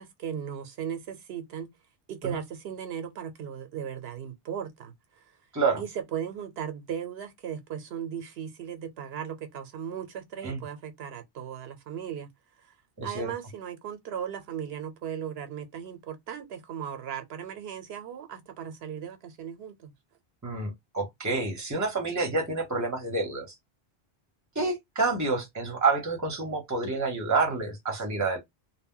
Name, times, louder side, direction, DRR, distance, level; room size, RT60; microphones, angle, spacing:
voice 1, 0.0-1.7 2.1-5.2 5.8-12.3 13.0-19.9, right 8 dB, 75° right, 0.8 m, -37 dB
voice 2, 13.0-13.3 20.4-23.5 24.5-28.4, right 3 dB, 20° right, 0.8 m, -28 dB
2.2 x 2.1 x 3.6 m
omnidirectional pair, 1.0 m